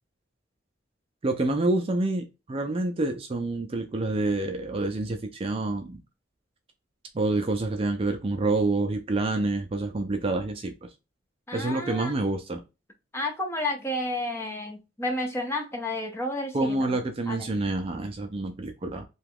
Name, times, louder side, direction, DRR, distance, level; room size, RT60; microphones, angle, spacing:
voice 1, 1.2-6.0 7.1-10.9 11.5-12.6 16.5-19.1, right 2 dB, 30° right, 5 dB, 0.4 m, -27 dB
voice 2, 11.5-12.2 13.1-17.0 17.3-17.5, left 1 dB, 15° left, 3 dB, 0.6 m, -31 dB
2.8 x 2.3 x 3.5 m, 0.27 s
head